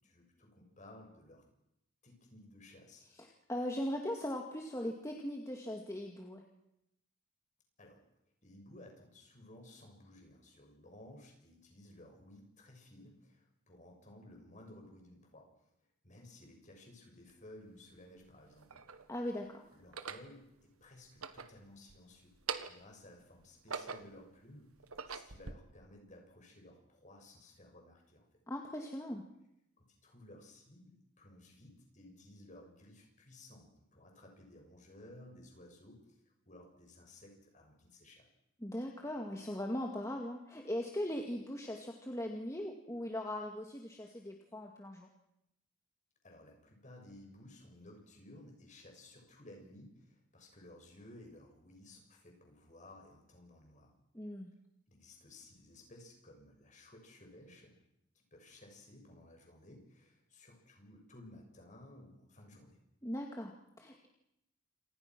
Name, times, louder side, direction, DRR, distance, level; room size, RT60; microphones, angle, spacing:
voice 1, 0.0-1.4 2.0-3.1 7.8-8.0 8.4-15.7 16.0-18.9 19.7-22.3 22.7-24.7 25.1-28.3 29.8-36.2 36.5-38.3 46.2-53.9 54.9-57.8 58.2-62.8, left 1 dB, 35° left, 2 dB, 6.9 m, -56 dB
voice 2, 3.2-6.4 19.1-19.7 28.5-29.2 38.6-45.1 54.1-54.5 63.0-64.1, left 1 dB, 15° left, 1 dB, 2.2 m, -39 dB
sound 1, 17.3-17.4 18.2-19.1 19.8-20.3 21.0-22.0 22.3-22.9 23.4-24.3 24.8-25.5, right 6 dB, 90° right, 1.5 m, -43 dB
28.5 x 26.5 x 6.2 m, 0.82 s
head